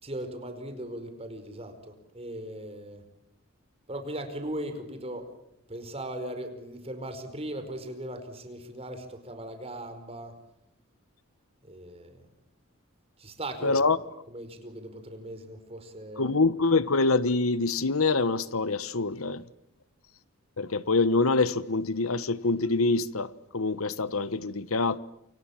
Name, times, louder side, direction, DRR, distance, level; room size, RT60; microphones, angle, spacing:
voice 1, 0.0-3.0 3.9-5.3 5.7-10.3 11.7-12.1 13.2-13.8 14.3-16.3, right 1 dB, 30° right, 5.0 m, -38 dB
voice 2, 13.6-14.0 16.2-19.4 20.6-25.0, left 3 dB, 90° left, 1.2 m, -25 dB
29.0 x 26.0 x 7.3 m
head